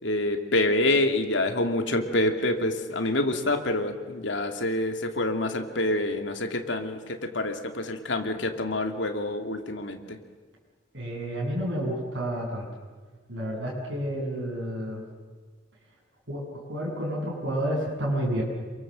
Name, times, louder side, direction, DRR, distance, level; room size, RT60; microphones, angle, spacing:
voice 1, 0.0-10.2, left 1 dB, 65° left, 6 dB, 2.5 m, -27 dB
voice 2, 10.9-12.6 13.3-15.0 16.3-18.4, equal, 65° right, -3 dB, 7.4 m, -30 dB
28.0 x 23.5 x 7.6 m, 1.4 s
head